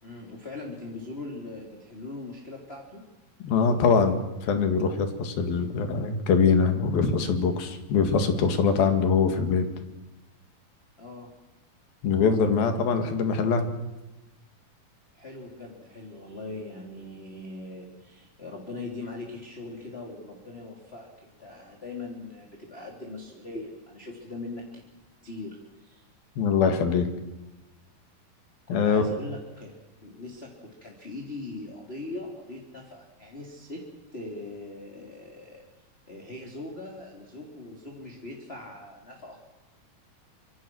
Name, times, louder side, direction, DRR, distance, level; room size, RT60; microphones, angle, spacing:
voice 1, 0.0-3.0 11.0-11.3 15.1-24.8 25.2-26.0 28.7-29.7 30.0-33.8 34.1-35.6 36.1-39.4, left 2 dB, 15° left, 0 dB, 3.3 m, -40 dB
voice 2, 3.4-9.7 12.0-13.7 26.4-27.1 28.7-29.1, left 5 dB, 85° left, 7 dB, 3.9 m, -23 dB
26.0 x 25.5 x 6.3 m, 1.0 s
omnidirectional pair, 4.1 m